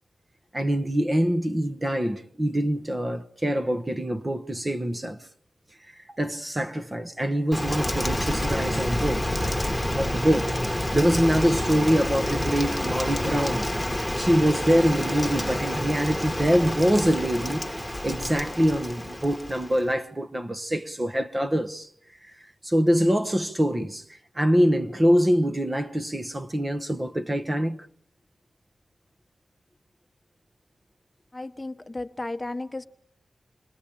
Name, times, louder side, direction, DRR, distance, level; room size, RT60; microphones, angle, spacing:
voice 1, 0.5-5.2 6.1-9.3 9.9-13.7 14.2-17.7 18.0-21.9 22.6-27.8, equal, 25° right, 1.1 m, -24 dB
Rain, 7.5-19.9, left 1 dB, ahead, 1.5 m, -28 dB
voice 2, 31.3-32.9, left 2 dB, 20° left, 1.2 m, -34 dB
28.0 x 21.0 x 8.6 m
wide cardioid pair, 85°, 0 cm